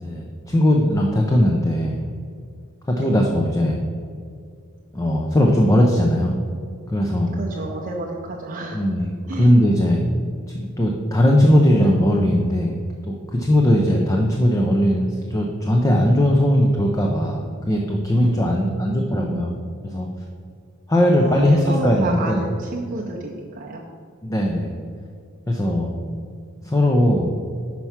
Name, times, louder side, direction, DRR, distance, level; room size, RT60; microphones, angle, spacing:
voice 1, 0.0-2.0 2.9-3.8 4.9-6.4 6.9-7.3 8.7-9.1 9.4-10.0 10.5-12.7 13.0-19.5 19.9-20.1 20.9-22.4 24.2-24.7 25.5-25.9 26.6-27.4, equal, 15° left, 1 dB, 0.5 m, -19 dB
voice 2, 7.3-8.8 9.3-9.5 13.9-14.2 18.5-19.6 21.2-23.8 25.6-26.2, right 2 dB, 40° right, -2 dB, 0.6 m, -31 dB
5.9 x 4.4 x 5.7 m, 2.2 s
head